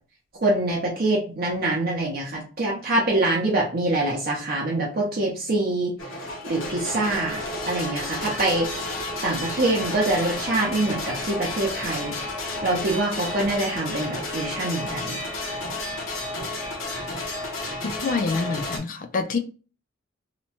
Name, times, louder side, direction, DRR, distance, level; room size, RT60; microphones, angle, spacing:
voice 1, 0.4-5.9 6.5-8.7 9.2-12.1 12.6-15.2, right 2 dB, 50° right, 0.6 m, -25 dB
sound 1, 6.0-18.8, left 2 dB, 75° left, 0.8 m, -31 dB
voice 2, 17.8-19.4, left 4 dB, 40° left, 0.3 m, -26 dB
2.8 x 2.1 x 2.7 m
head